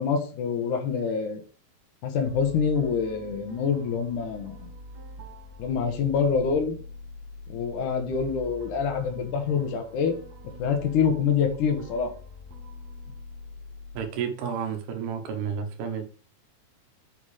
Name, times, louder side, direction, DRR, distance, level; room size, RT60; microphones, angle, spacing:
voice 1, 0.0-1.4 2.0-4.7 5.6-6.8 7.5-10.1 10.6-12.1, left 6 dB, 65° left, 2.4 m, -26 dB
sound 1, 2.3-14.0, left 1 dB, 60° right, 2.2 m, -45 dB
voice 2, 13.9-16.1, right 7 dB, 90° right, 3.0 m, -31 dB
7.6 x 4.7 x 4.9 m
omnidirectional pair, 4.3 m